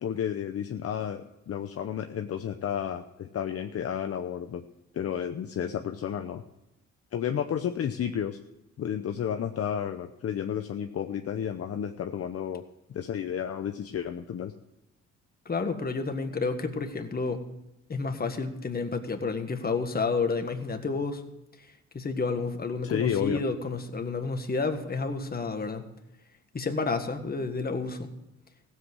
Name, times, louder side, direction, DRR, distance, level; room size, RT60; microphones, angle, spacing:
voice 1, 0.0-4.6 4.9-6.4 7.1-8.4 8.8-12.6 12.9-14.5 22.8-23.4, left 9 dB, 50° left, 6 dB, 0.8 m, -31 dB
voice 2, 15.5-17.5 17.9-21.2 21.9-25.9 26.5-28.1, left 4 dB, 30° left, 6 dB, 1.7 m, -30 dB
16.0 x 7.8 x 6.2 m, 0.92 s
cardioid pair, 90°, 30 cm